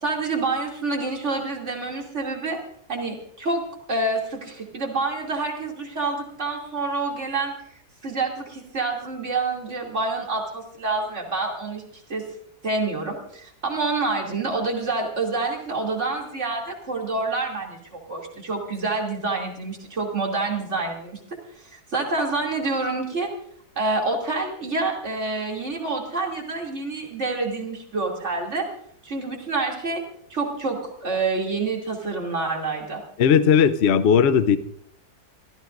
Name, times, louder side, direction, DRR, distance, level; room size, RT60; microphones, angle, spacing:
voice 1, 0.0-2.6 2.9-3.6 3.9-7.5 8.0-11.8 12.1-12.2 12.6-21.2 21.7-23.3 23.7-28.6 29.0-30.0 30.3-33.0, right 3 dB, 45° right, 0 dB, 3.1 m, -27 dB
voice 2, 33.2-34.6, left 7 dB, 55° left, 11 dB, 0.8 m, -17 dB
25.0 x 15.0 x 2.6 m, 0.64 s
omnidirectional pair, 1.7 m